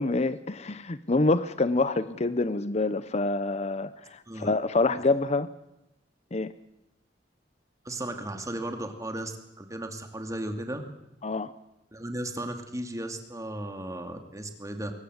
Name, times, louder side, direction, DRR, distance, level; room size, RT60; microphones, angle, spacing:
voice 1, 0.0-5.5 6.3-6.5 11.2-11.5, left 3 dB, 40° left, 14 dB, 0.7 m, -26 dB
voice 2, 7.8-10.8 11.9-14.9, right 1 dB, 20° right, 5 dB, 2.5 m, -35 dB
22.0 x 19.0 x 8.1 m, 0.90 s
head